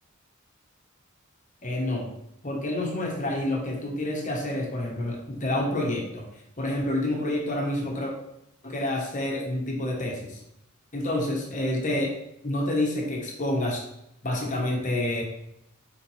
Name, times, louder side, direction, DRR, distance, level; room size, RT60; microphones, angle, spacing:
voice 1, 1.6-2.1 2.4-6.3 6.6-8.1 8.6-10.4 10.9-12.1 12.4-13.8 14.2-15.2, left 1 dB, 35° left, 0 dB, 1.2 m, -28 dB
5.7 x 5.0 x 3.3 m, 0.81 s
head